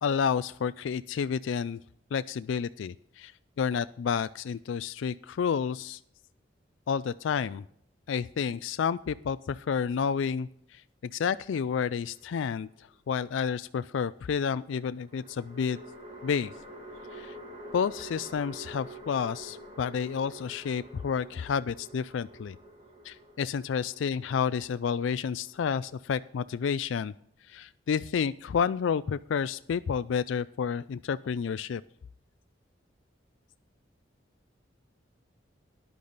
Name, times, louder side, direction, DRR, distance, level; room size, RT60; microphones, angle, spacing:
voice 1, 0.0-1.8 2.1-3.3 3.6-6.0 6.9-7.7 8.1-15.8 16.2-16.5 17.1-17.4 17.7-22.6 23.0-27.1 27.5-31.8, left 6 dB, 80° left, 14 dB, 0.4 m, -30 dB
sound 1, 11.9-12.8 15.1-26.4, right 1 dB, 30° right, 2.6 m, -48 dB
13.5 x 10.5 x 4.0 m, 0.69 s
head